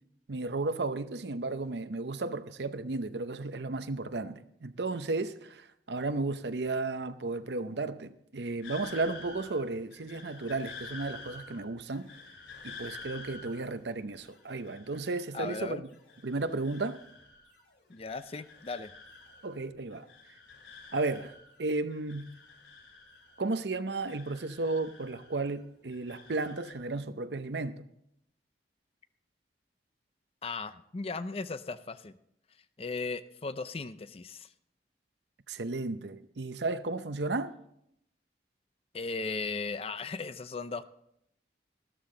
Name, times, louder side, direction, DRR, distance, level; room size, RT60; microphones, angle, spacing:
voice 1, 0.3-12.2 12.6-15.9 16.2-17.0 19.4-20.1 20.9-21.3 21.6-22.3 23.4-27.9 35.5-37.6, right 3 dB, 75° right, 0.7 m, -34 dB
sound 1, 8.6-15.6 15.9-17.6 17.9-19.7 19.9-21.6 21.9-23.6 23.9-25.6 25.9-26.7, left 3 dB, 90° left, 2.6 m, -49 dB
voice 2, 15.3-15.8 17.9-18.9 30.4-32.1 32.8-34.5 38.9-40.8, left 4 dB, 35° left, 0.5 m, -37 dB
14.0 x 13.0 x 3.9 m
head